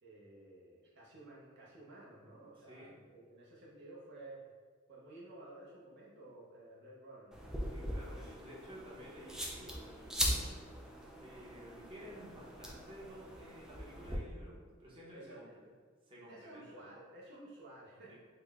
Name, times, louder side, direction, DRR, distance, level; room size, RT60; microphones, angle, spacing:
voice 1, 0.0-4.4 4.9-7.5 15.1-15.4 16.3-18.1, right 2 dB, 55° right, -6 dB, 0.7 m, -53 dB
voice 2, 2.6-3.0 7.6-10.5 11.2-15.7 16.0-16.9 18.1-18.2, equal, 25° right, -7 dB, 0.8 m, -53 dB
sound 1, 7.3-14.2, equal, 5° right, 0.3 m, -41 dB
3.9 x 2.1 x 3.5 m, 1.5 s
head